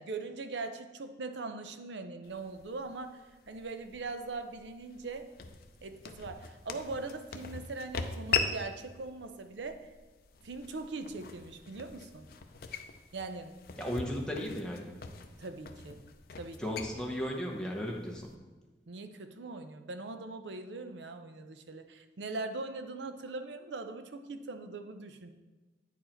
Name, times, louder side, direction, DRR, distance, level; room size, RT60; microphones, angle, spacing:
voice 1, 0.0-3.2 3.5-5.3 5.8-9.9 10.4-12.3 13.1-13.5 15.4-16.0 16.4-16.6 18.9-25.3, right 3 dB, 80° right, 8 dB, 0.6 m, -41 dB
sound 1, 2.2-18.3, left 5 dB, 55° left, 0.5 m, -41 dB
voice 2, 13.8-14.9 16.6-18.3, equal, 5° left, -1 dB, 0.9 m, -35 dB
9.0 x 4.6 x 4.4 m, 1.2 s
head